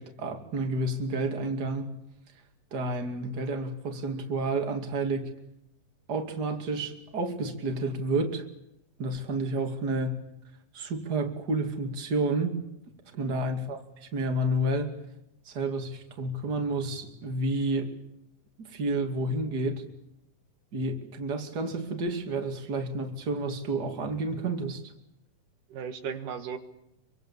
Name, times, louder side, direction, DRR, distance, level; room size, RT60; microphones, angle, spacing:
voice 1, 0.0-1.9 2.7-5.3 6.1-8.4 9.0-10.2 10.7-12.6 13.2-13.8 14.1-14.9 15.5-17.9 18.6-19.8 20.7-24.8, right 2 dB, 30° right, 5 dB, 2.8 m, -30 dB
voice 2, 13.1-13.5 25.7-26.6, right 7 dB, 75° right, 8 dB, 3.0 m, -37 dB
25.5 x 25.0 x 7.3 m, 0.83 s
omnidirectional pair, 3.8 m